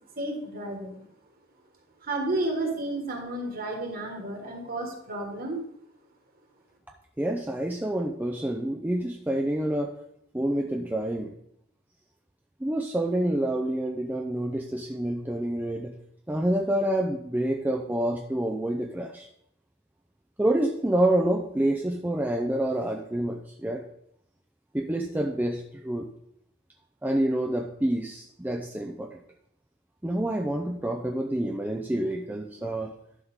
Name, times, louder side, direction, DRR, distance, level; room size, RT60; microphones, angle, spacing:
voice 1, 0.2-1.0 2.0-5.6, right 2 dB, 45° right, 2 dB, 1.8 m, -31 dB
voice 2, 7.2-10.0 10.3-11.3 12.6-15.9 16.3-19.3 20.4-23.8 24.7-26.1 27.0-29.2 30.0-32.9, right 1 dB, 10° right, 2 dB, 0.5 m, -27 dB
11.5 x 5.9 x 3.7 m, 0.73 s
head